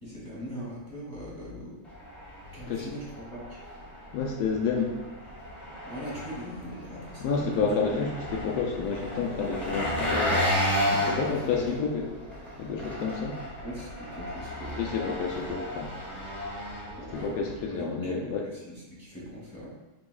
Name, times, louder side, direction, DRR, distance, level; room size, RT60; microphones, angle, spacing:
voice 1, 0.0-1.8 2.5-3.6 5.8-7.7 11.5-11.7 13.6-15.1 17.0-19.7, equal, 30° right, -6 dB, 1.7 m, -40 dB
Engine, 1.8-17.6, equal, ahead, 0.9 m, -33 dB
voice 2, 4.1-5.0 7.2-10.5 10.9-12.1 12.6-13.4 14.8-15.9 17.1-18.4, left 5 dB, 75° left, 0 dB, 1.0 m, -29 dB
4.9 x 3.8 x 2.3 m, 1.1 s
omnidirectional pair, 1.8 m